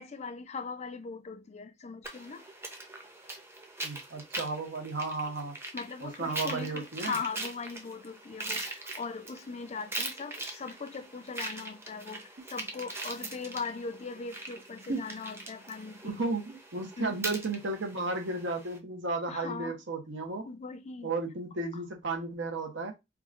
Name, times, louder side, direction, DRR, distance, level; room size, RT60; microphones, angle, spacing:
voice 1, 0.0-2.5 5.7-16.2 17.0-17.2 19.3-19.8 20.4-21.1 21.7-21.8, left 4 dB, 35° left, 0.4 m, -40 dB
sound 1, 2.0-18.8, right 2 dB, 15° right, 0.6 m, -42 dB
voice 2, 3.8-5.5 6.0-7.2 14.9-15.0 16.0-20.5 21.0-22.9, right 3 dB, 80° right, 1.0 m, -34 dB
4.8 x 2.3 x 2.4 m
head